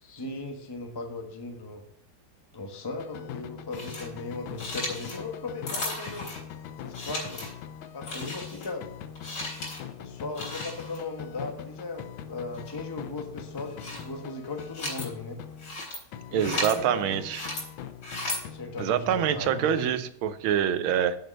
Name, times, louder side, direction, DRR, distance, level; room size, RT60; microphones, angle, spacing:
voice 1, 0.0-1.8 2.5-6.3 6.8-7.4 7.9-8.9 10.0-15.4 16.3-17.2 18.5-20.0, left 3 dB, 15° left, 3 dB, 1.0 m, -37 dB
sound 1, 3.0-15.9 16.1-20.0, left 9 dB, 75° left, 1.4 m, -42 dB
sound 2, 3.7-4.1 4.5-5.2 5.7-6.4 6.9-7.5 8.0-8.7 9.2-9.8 10.3-11.0 12.5-12.8 13.5-14.1 14.5-15.1 15.6-16.0 16.4-16.7 17.3-17.7 18.0-18.4, left 2 dB, 90° left, 5.1 m, -35 dB
voice 2, 16.3-17.4 18.8-21.2, right 9 dB, 80° right, 12 dB, 1.5 m, -26 dB
8.2 x 6.7 x 6.5 m, 0.72 s
omnidirectional pair, 2.3 m